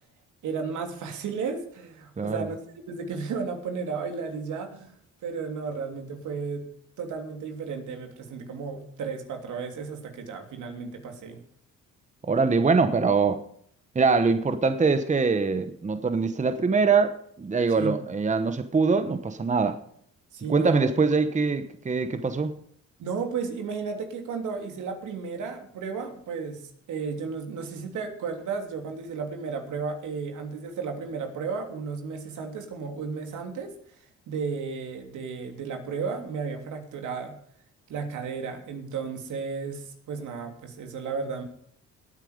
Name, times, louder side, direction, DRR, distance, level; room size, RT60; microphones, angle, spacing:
voice 1, 0.4-2.6 2.9-4.9 5.2-6.6 7.0-11.4 17.7-18.0 20.3-20.9 23.0-33.7 34.3-37.4 37.9-41.4, right 5 dB, 75° right, 3.1 m, -33 dB
voice 2, 12.2-13.4 13.9-19.8 20.5-22.6, right 4 dB, 25° right, 1.1 m, -23 dB
17.5 x 9.2 x 5.1 m
cardioid pair, 90°, 30 cm